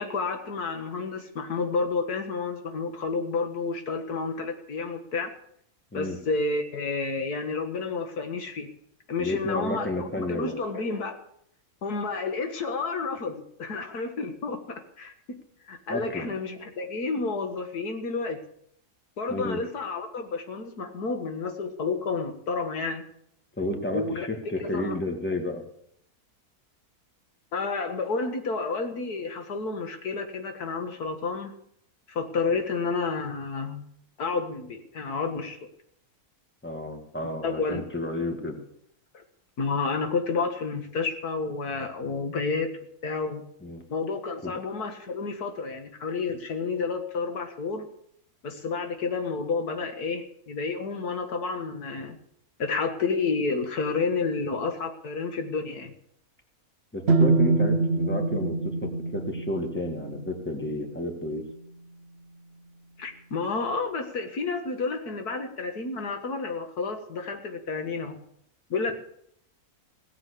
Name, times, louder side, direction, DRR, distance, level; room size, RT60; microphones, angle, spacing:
voice 1, 0.0-5.3 5.9-8.7 9.1-11.2 11.8-15.1 15.7-18.4 19.2-23.1 23.9-24.3 24.6-25.0 27.5-31.5 32.1-33.8 34.2-35.6 37.4-37.8 39.1-39.2 39.6-42.7 43.0-43.4 43.9-47.9 48.4-52.2 52.6-55.9 63.0-68.2 68.7-68.9, left 4 dB, 85° left, 6 dB, 2.1 m, -30 dB
voice 2, 9.2-10.5 15.9-16.3 19.3-19.6 23.6-25.6 36.6-38.6 43.6-43.8 44.4-44.5 56.9-61.4, left 1 dB, 5° left, 3 dB, 2.0 m, -31 dB
sound 1, 57.1-61.0, right 3 dB, 55° right, 0.8 m, -25 dB
17.0 x 7.4 x 8.4 m, 0.70 s
omnidirectional pair, 1.6 m